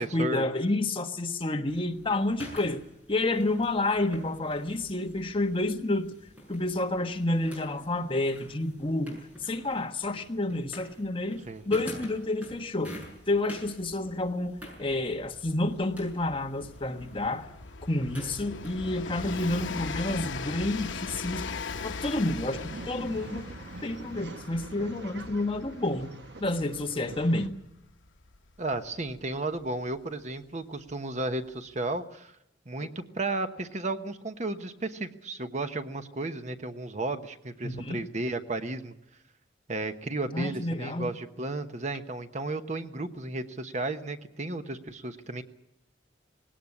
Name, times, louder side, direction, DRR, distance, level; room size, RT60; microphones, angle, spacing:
voice 1, 0.0-2.8 3.1-6.1 6.5-13.0 13.3-17.5 17.8-23.5 23.8-26.1 26.4-27.5 32.8-32.9 37.6-38.0 40.3-41.1, left 2 dB, 30° left, 4 dB, 1.4 m, -29 dB
sound 1, 1.7-19.3, left 1 dB, 10° right, 7.0 m, -48 dB
Train, 13.0-13.1 13.3-29.9 30.9-31.0, left 4 dB, 90° left, 0.9 m, -40 dB
Male speech man speaking / Chatter / Rattle, 22.5-27.5, right 2 dB, 60° right, 1.1 m, -44 dB
voice 2, 28.6-32.3 32.7-38.9 39.7-45.4, right 2 dB, 40° right, 8 dB, 1.1 m, -33 dB
19.5 x 17.5 x 9.8 m, 0.84 s
head